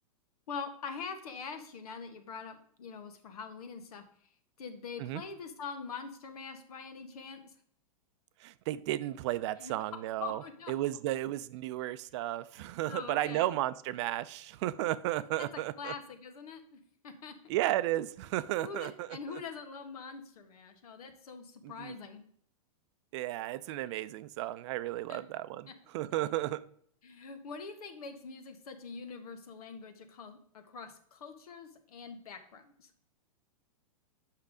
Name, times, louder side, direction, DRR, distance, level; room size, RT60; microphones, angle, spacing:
voice 1, 0.5-4.0 4.6-7.4 9.6-9.7 10.2-10.7 12.9-13.5 15.4-17.5 18.6-22.2 25.1-25.2 27.0-32.9, left 5 dB, 80° left, 7 dB, 1.6 m, -44 dB
voice 2, 8.4-15.9 17.5-19.2 21.6-21.9 23.1-26.6, right 15 dB, 50° right, 15 dB, 0.5 m, -34 dB
8.3 x 5.9 x 5.0 m, 0.62 s
hypercardioid pair, 135°, 19 cm